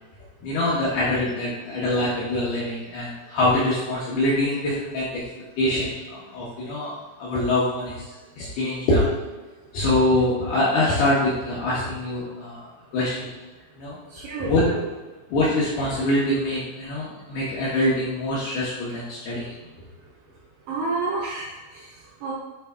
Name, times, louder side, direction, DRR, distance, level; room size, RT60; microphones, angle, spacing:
voice 1, 0.4-5.1 5.6-6.9 7.2-8.0 8.4-9.1 9.7-12.7 12.9-13.3 13.8-14.0 14.4-14.6 15.3-19.5, left 1 dB, 75° left, -8 dB, 2.4 m, -24 dB
voice 2, 14.1-14.9 20.7-22.3, right 3 dB, 80° right, -3 dB, 2.6 m, -30 dB
9.1 x 3.3 x 3.5 m, 1.2 s
omnidirectional pair, 5.9 m